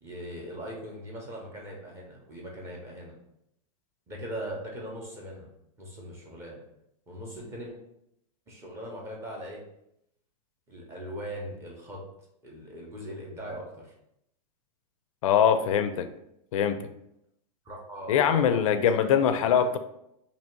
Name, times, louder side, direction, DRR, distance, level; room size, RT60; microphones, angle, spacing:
voice 1, 0.0-3.1 4.1-5.5 5.8-6.6 7.1-7.8 8.5-9.6 10.7-12.0 12.4-13.9 17.6-18.7 19.0-19.8, equal, 15° right, -2 dB, 0.6 m, -40 dB
voice 2, 15.2-16.1 16.5-16.8 18.1-19.8, left 8 dB, 55° left, 10 dB, 0.4 m, -22 dB
2.8 x 2.8 x 4.4 m, 0.80 s
supercardioid pair, 160°, 20 cm